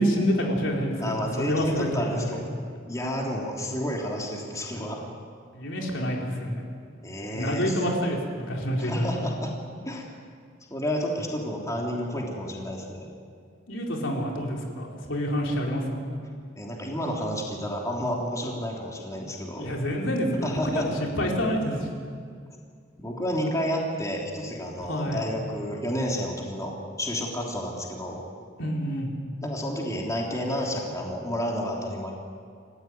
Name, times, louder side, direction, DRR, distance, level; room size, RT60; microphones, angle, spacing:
voice 1, 0.0-2.4 5.5-6.6 7.3-9.1 13.7-16.0 19.6-21.9 24.8-25.2 28.6-29.1, equal, 70° left, -1 dB, 4.4 m, -27 dB
voice 2, 1.0-2.4 2.9-5.0 7.0-7.8 8.8-9.5 9.8-10.1 10.7-13.1 16.5-19.7 20.4-20.9 23.0-28.2 29.4-32.1, equal, 15° left, -1 dB, 3.2 m, -30 dB
29.0 x 15.5 x 9.5 m, 2.2 s
head